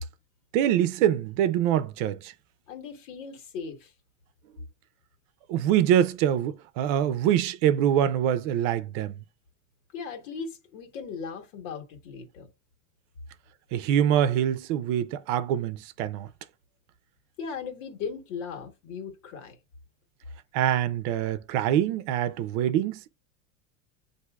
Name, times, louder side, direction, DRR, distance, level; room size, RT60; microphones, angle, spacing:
voice 1, 0.5-2.3 5.5-9.1 13.7-16.3 20.5-23.1, right 10 dB, 75° right, 0.6 m, -24 dB
voice 2, 2.7-3.9 9.9-12.5 17.4-19.6, left 5 dB, 85° left, 1.4 m, -38 dB
8.0 x 2.7 x 2.3 m
supercardioid pair, 130°, 36 cm